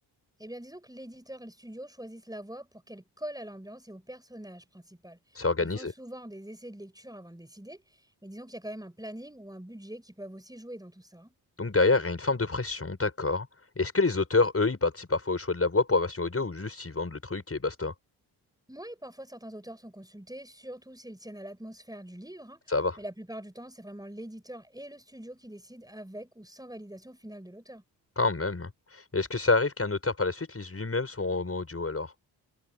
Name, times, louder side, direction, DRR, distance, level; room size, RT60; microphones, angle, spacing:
voice 1, 0.4-7.8 8.2-11.3 18.7-22.6 23.0-27.8, right 1 dB, 10° right, 6.2 m, -44 dB
voice 2, 5.3-5.9 11.6-13.5 13.8-17.9 22.7-23.0 28.2-32.1, left 3 dB, 30° left, 6.6 m, -27 dB
hypercardioid pair, 40°, 45 cm